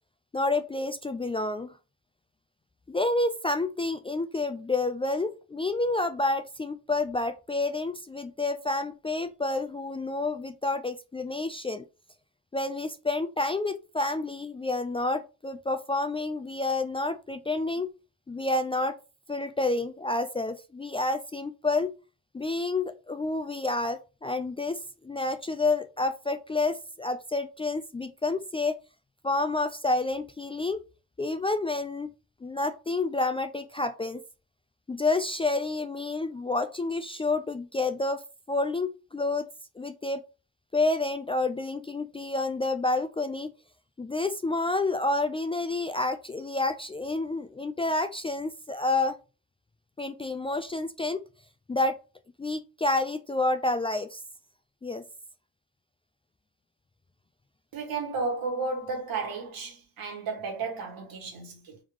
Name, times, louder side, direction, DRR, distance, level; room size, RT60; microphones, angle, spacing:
voice 1, 0.3-1.7 2.9-11.8 12.5-17.9 18.3-19.0 19.3-22.0 22.3-28.8 29.2-30.8 31.2-32.1 32.4-34.2 34.9-39.5 39.8-40.2 40.7-43.5 44.0-49.2 50.0-51.2 51.7-52.0 52.4-54.2 54.8-55.0, left 2 dB, 15° left, 0.3 m, -29 dB
voice 2, 57.7-61.8, right 4 dB, 70° right, 1.7 m, -33 dB
3.7 x 3.0 x 3.7 m
cardioid pair, 70°, 36 cm